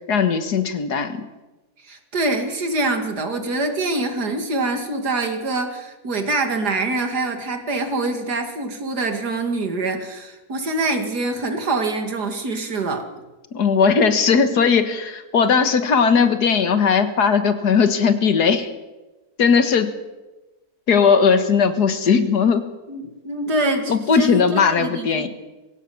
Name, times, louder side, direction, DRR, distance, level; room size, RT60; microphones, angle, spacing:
voice 1, 0.1-1.3 13.5-18.7 19.4-19.9 20.9-22.7 23.9-25.3, left 6 dB, 80° left, 9 dB, 2.1 m, -18 dB
voice 2, 1.8-13.1 22.9-25.3, right 2 dB, 80° right, 5 dB, 2.9 m, -25 dB
22.0 x 16.5 x 7.2 m, 1.1 s
omnidirectional pair, 1.7 m